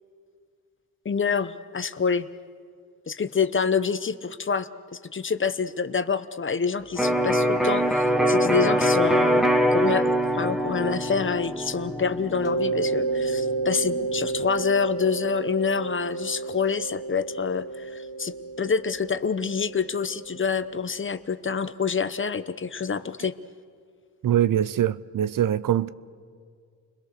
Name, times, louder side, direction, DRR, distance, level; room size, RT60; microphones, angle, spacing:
voice 1, 1.0-2.3 3.1-23.3, left 5 dB, 35° left, 1.0 m, -27 dB
Electric guitar, 7.0-14.7, equal, ahead, 1.5 m, -24 dB
Mallet percussion, 12.4-21.0, right 3 dB, 55° left, 1.9 m, -31 dB
voice 2, 24.2-25.9, right 11 dB, 60° right, 0.7 m, -23 dB
30.0 x 21.5 x 6.8 m
cardioid pair, 85°, 36 cm